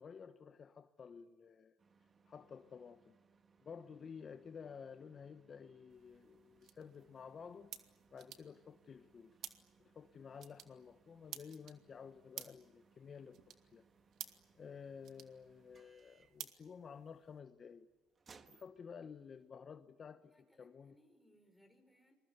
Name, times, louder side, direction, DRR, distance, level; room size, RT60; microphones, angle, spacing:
voice 1, 0.0-1.7 2.3-3.2 3.6-7.7 8.1-9.4 9.8-13.8 14.5-17.9 18.5-20.3 20.6-20.9, left 6 dB, 40° left, 1.1 m, -53 dB
sound 1, 1.8-19.5, right 5 dB, 35° right, 1.7 m, -69 dB
sound 2, 5.9-17.4, right 10 dB, 65° right, 2.2 m, -55 dB
voice 2, 20.2-22.1, equal, ahead, 6.3 m, -69 dB
28.0 x 22.0 x 9.3 m
cardioid pair, 95°, 0 cm